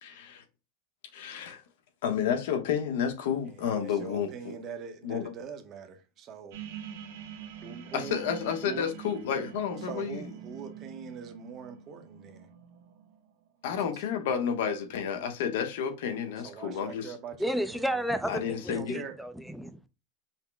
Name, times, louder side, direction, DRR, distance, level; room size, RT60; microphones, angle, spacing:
voice 1, 0.0-0.4 1.1-1.6 2.0-4.5 5.0-5.3 7.9-10.2 13.6-17.1 18.3-19.0, left 7 dB, 75° left, 0.9 m, -31 dB
voice 2, 3.4-6.6 7.6-8.2 8.6-8.9 9.7-12.5 13.7-14.0 16.4-17.8 18.7-19.2, right 6 dB, 30° right, 0.7 m, -43 dB
sound 1, 6.5-13.3, right 9 dB, 90° right, 0.9 m, -45 dB
voice 3, 17.4-19.9, equal, ahead, 0.4 m, -32 dB
5.5 x 2.1 x 3.4 m
supercardioid pair, 165°, 0 cm